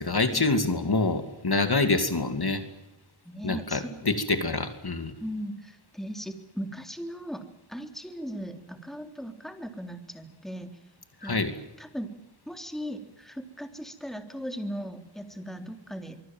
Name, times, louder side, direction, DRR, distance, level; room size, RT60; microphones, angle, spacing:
voice 1, 0.0-2.6 3.4-5.1 11.2-11.5, left 3 dB, 50° left, 8 dB, 2.7 m, -26 dB
voice 2, 3.3-4.6 5.2-10.7 11.2-11.4 11.8-12.1 12.5-16.2, equal, ahead, 6 dB, 3.5 m, -38 dB
24.5 x 24.0 x 7.5 m, 0.88 s
wide cardioid pair, 65°, 47 cm